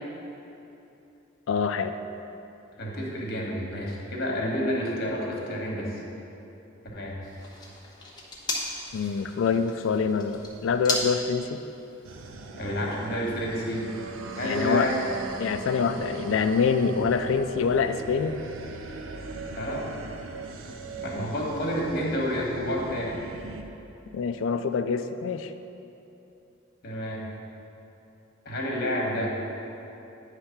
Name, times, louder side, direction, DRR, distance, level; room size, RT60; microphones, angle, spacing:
voice 1, 1.5-2.0 8.9-11.6 14.4-14.9 15.4-18.4 21.1-21.3 24.1-25.5, left 5 dB, 70° left, 9 dB, 0.3 m, -25 dB
voice 2, 2.8-6.0 6.9-7.2 12.5-13.9 14.4-15.0 19.5-19.9 20.9-23.2 26.8-27.2 28.4-29.3, equal, 50° left, -2 dB, 1.4 m, -29 dB
sound 1, 7.2-12.3, left 2 dB, 20° left, 0.9 m, -36 dB
sound 2, 12.0-23.6, right 3 dB, 85° right, 0.6 m, -39 dB
9.7 x 3.3 x 5.8 m, 2.9 s
head